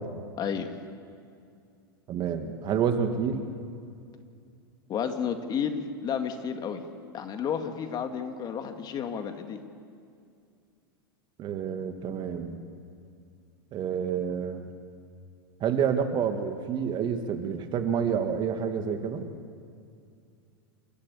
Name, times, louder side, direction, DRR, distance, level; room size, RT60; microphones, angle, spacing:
voice 1, 0.4-0.7 4.9-6.8 7.1-9.6, left 7 dB, 35° left, 6 dB, 2.2 m, -31 dB
voice 2, 2.1-3.4 11.4-12.6 13.7-14.6 15.6-19.3, right 7 dB, 35° right, 7 dB, 2.3 m, -28 dB
28.5 x 14.0 x 8.5 m, 2.4 s
hypercardioid pair, 95°, 12 cm